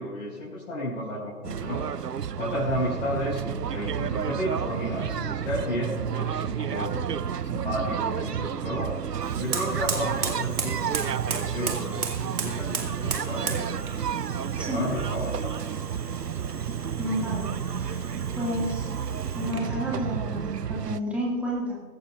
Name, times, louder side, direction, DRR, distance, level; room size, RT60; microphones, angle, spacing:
voice 1, 0.0-1.8 2.4-7.0 7.5-8.9 9.3-13.7 14.3-15.6 19.1-19.4 19.7-19.8, equal, 50° left, -7 dB, 5.0 m, -32 dB
sound 1, 1.4-21.0, right 8 dB, 85° right, 0.6 m, -31 dB
Fire, 9.2-19.8, right 5 dB, 60° right, 2.4 m, -36 dB
voice 2, 14.6-14.9 17.0-17.5 17.8-18.0 18.3-18.9 19.3-21.8, equal, 5° right, -5 dB, 2.1 m, -30 dB
23.5 x 13.5 x 2.5 m, 1.5 s
figure-of-eight pair, 135°, 47 cm